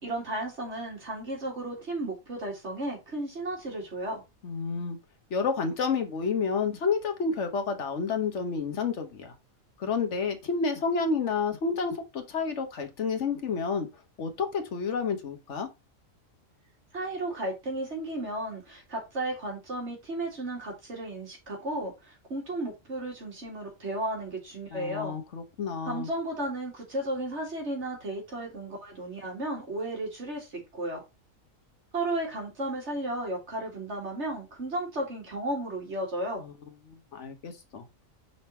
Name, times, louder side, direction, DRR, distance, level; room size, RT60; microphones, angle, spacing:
voice 1, 0.0-4.2 16.9-25.1 25.9-31.0 31.9-36.4, right 1 dB, 55° right, 2.7 m, -34 dB
voice 2, 4.4-5.0 5.3-9.3 9.8-13.9 14.2-15.7 24.7-26.1 36.4-36.5 36.9-37.8, left 5 dB, 60° left, 1.4 m, -30 dB
5.4 x 4.0 x 4.3 m
omnidirectional pair, 1.4 m